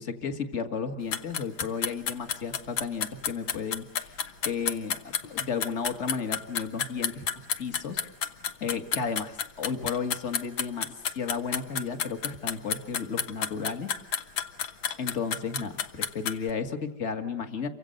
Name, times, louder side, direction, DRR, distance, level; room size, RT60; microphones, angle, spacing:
voice 1, 0.0-8.0 8.6-13.9 15.0-17.7, left 5 dB, 35° left, 7 dB, 2.1 m, -33 dB
sound 1, 1.1-16.5, left 7 dB, 75° left, 2.0 m, -30 dB
29.0 x 25.0 x 6.6 m, 0.72 s
omnidirectional pair, 2.2 m